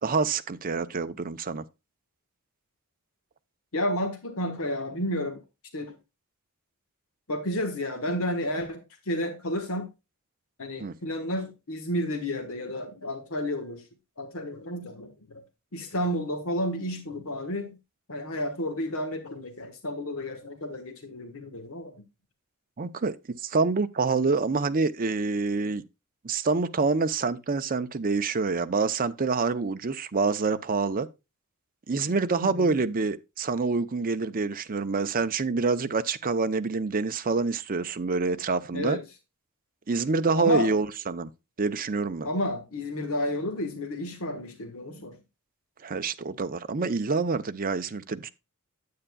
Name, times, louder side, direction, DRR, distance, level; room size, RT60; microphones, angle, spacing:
voice 1, 0.0-1.6 10.8-11.0 22.8-25.8 26.2-31.1 31.9-39.0 39.9-41.3 41.6-42.3 45.8-48.3, right 4 dB, 40° right, 0.6 m, -27 dB
voice 2, 3.7-5.4 5.7-5.9 7.3-8.8 9.1-9.9 10.6-13.8 14.2-15.4 15.7-17.8 18.1-22.0 32.4-32.8 38.7-39.0 40.3-40.7 42.2-45.2, left 1 dB, 65° left, 1.4 m, -31 dB
9.5 x 8.7 x 2.3 m
head